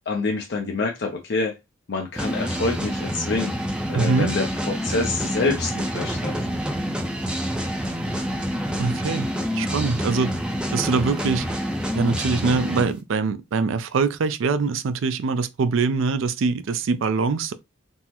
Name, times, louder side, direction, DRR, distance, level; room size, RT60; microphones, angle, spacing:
voice 1, 0.1-1.6 1.9-3.5 3.9-4.5 4.8-6.4, left 3 dB, 55° left, 0.5 m, -26 dB
sound 1, 2.2-12.9, equal, 5° right, 0.4 m, -27 dB
voice 2, 3.9-4.3 8.8-10.4 10.7-11.5 11.9-17.5, right 4 dB, 70° right, 0.4 m, -23 dB
3.5 x 2.0 x 2.8 m
head